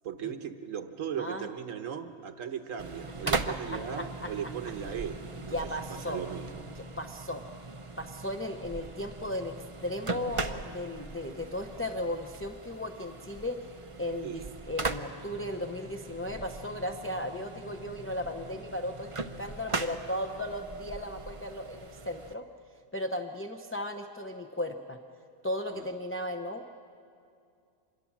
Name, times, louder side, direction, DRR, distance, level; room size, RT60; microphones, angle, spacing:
voice 1, 0.0-5.2 5.4-5.6 5.9-6.7 14.2-14.5 25.7-25.9, right 8 dB, 85° right, 8 dB, 1.4 m, -37 dB
sound 1, 2.8-22.3, right 3 dB, 30° right, 0.7 m, -39 dB
voice 2, 4.0-4.3 5.5-6.2 6.8-7.4 8.0-9.5 9.8-13.6 14.0-19.1 19.4-22.4 22.9-25.0 25.4-26.8, left 1 dB, 15° left, 4 dB, 0.6 m, -36 dB
26.0 x 21.5 x 7.3 m, 2.5 s
omnidirectional pair, 1.3 m